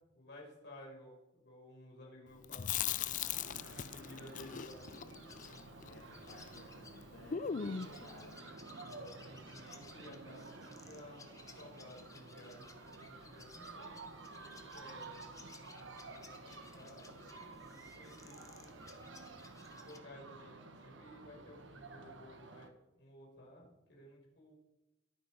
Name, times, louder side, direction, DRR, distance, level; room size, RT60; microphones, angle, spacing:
voice 1, 0.1-4.9 8.8-15.3 15.6-18.9 19.7-24.5, left 1 dB, 65° left, -2 dB, 6.2 m, -56 dB
Chewing mastication, 2.4-6.6 6.9-7.0 7.3-8.0, left 8 dB, 45° left, 0.5 m, -39 dB
sound 1, 3.1-22.7, right 3 dB, 85° right, 1.3 m, -52 dB
voice 2, 3.5-4.1 5.9-8.5, left 2 dB, 85° left, -2 dB, 2.1 m, -58 dB
sound 2, 4.5-20.0, left 4 dB, 20° left, 1.1 m, -59 dB
22.0 x 8.9 x 5.2 m, 0.97 s
head